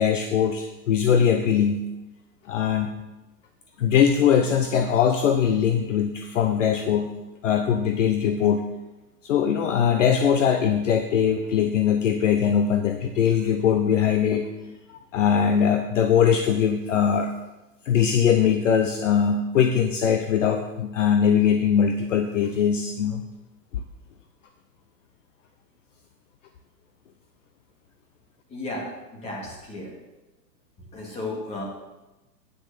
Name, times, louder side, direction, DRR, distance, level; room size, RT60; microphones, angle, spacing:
voice 1, 0.0-1.8 2.5-2.9 3.8-7.1 7.4-8.6 9.2-14.5 14.9-17.3 17.8-23.2 23.7-23.8, left 8 dB, 50° left, 6 dB, 0.8 m, -21 dB
voice 2, 28.5-30.0 30.8-31.6, left 2 dB, 10° left, -3 dB, 2.1 m, -34 dB
9.9 x 6.2 x 6.7 m, 1.0 s
hypercardioid pair, 165°, 49 cm